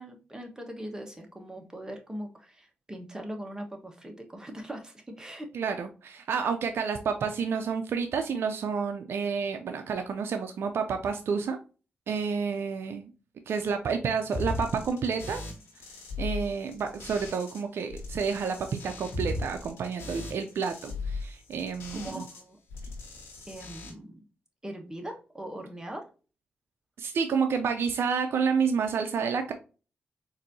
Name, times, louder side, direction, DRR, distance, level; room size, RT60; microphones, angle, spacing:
voice 1, 0.0-5.5 21.9-22.6 23.4-24.2 24.6-26.0, right 1 dB, 15° right, 3 dB, 1.1 m, -40 dB
voice 2, 5.5-11.6 12.1-13.1 13.5-15.4 16.2-22.2 27.0-29.5, right 6 dB, 75° right, 6 dB, 0.4 m, -29 dB
sound 1, 14.3-17.6 17.9-22.4 22.7-23.9, left 2 dB, 85° left, 1.1 m, -37 dB
4.0 x 2.6 x 2.6 m, 0.34 s
cardioid pair, 50°, 4 cm